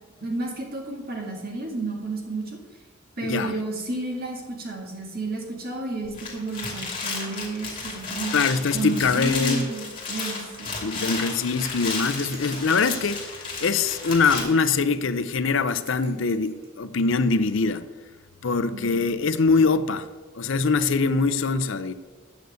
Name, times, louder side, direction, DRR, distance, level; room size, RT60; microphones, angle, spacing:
voice 1, 0.2-2.6 3.2-8.3 8.7-10.7 18.7-19.0, right 2 dB, 45° right, 2.1 m, -31 dB
voice 2, 3.2-3.6 8.3-9.7 10.8-17.9 18.4-20.1 20.3-21.9, left 4 dB, 60° left, 0.5 m, -23 dB
sound 1, 6.0-14.4, left 4 dB, 25° left, 2.7 m, -33 dB
sound 2, 12.3-16.7, right 3 dB, 85° right, 2.9 m, -49 dB
9.1 x 6.4 x 8.0 m
head